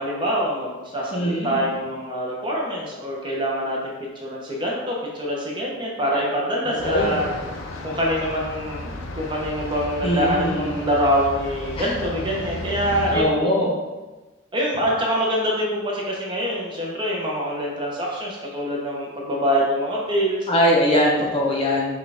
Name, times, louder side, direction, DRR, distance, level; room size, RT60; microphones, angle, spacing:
voice 1, 0.0-3.9 4.2-7.3 7.8-13.5 14.5-20.5, equal, 25° right, -3 dB, 0.8 m, -25 dB
voice 2, 1.1-1.7 6.6-7.2 8.9-9.0 10.0-10.9 11.8-11.9 13.1-13.7 20.5-21.9, equal, 25° left, -3 dB, 0.7 m, -22 dB
sound 1, 6.8-13.2, left 2 dB, 85° left, 0.6 m, -33 dB
6.2 x 2.4 x 3.4 m, 1.2 s
head